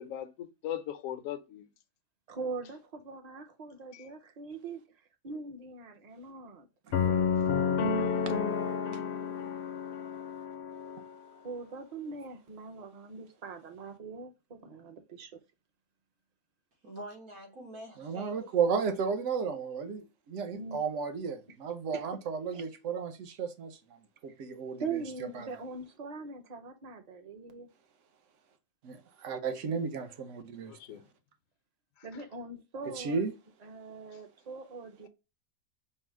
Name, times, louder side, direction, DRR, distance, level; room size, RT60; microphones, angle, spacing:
voice 1, 0.0-1.7 3.9-4.0 30.7-31.0, left 11 dB, 75° left, 1.0 m, -39 dB
voice 2, 2.3-4.8 5.2-6.7 11.3-15.3 20.5-20.8 21.9-22.1 22.5-22.7 24.8-27.7 32.0-33.2 33.6-35.1, right 4 dB, 35° right, 0.7 m, -42 dB
sound 1, 6.9-11.1, left 6 dB, 55° left, 0.7 m, -30 dB
voice 3, 16.8-19.0, right 1 dB, 90° right, 1.8 m, -46 dB
voice 4, 18.0-23.8 24.2-24.8 25.3-25.5 28.8-30.7 33.0-33.3, right 6 dB, 65° right, 1.1 m, -33 dB
5.5 x 2.1 x 4.6 m
omnidirectional pair, 1.4 m